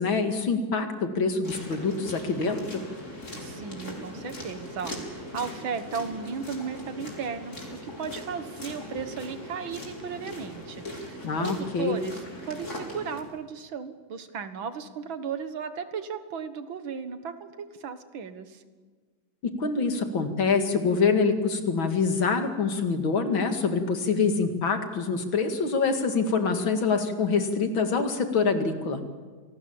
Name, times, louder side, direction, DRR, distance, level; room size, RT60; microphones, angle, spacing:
voice 1, 0.0-2.8 11.2-12.0 19.4-29.0, left 4 dB, 85° left, 6 dB, 2.9 m, -25 dB
sound 1, 1.4-13.2, left 1 dB, 35° left, 4.8 m, -40 dB
voice 2, 3.4-18.6, right 6 dB, 85° right, 10 dB, 2.3 m, -36 dB
27.0 x 19.5 x 7.3 m, 1.5 s
omnidirectional pair, 2.1 m